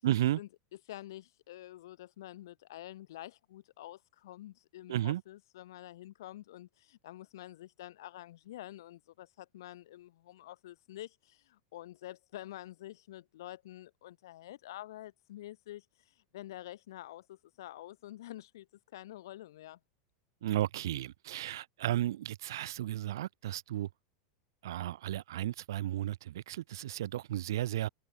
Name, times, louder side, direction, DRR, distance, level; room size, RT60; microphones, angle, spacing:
voice 1, 0.0-0.4 4.9-5.2 20.4-23.9 24.6-27.9, right 13 dB, 90° right, 1.6 m, -33 dB
voice 2, 0.9-18.7 18.9-19.8, left 14 dB, 80° left, 3.0 m, -48 dB
supercardioid pair, 160°, 2 cm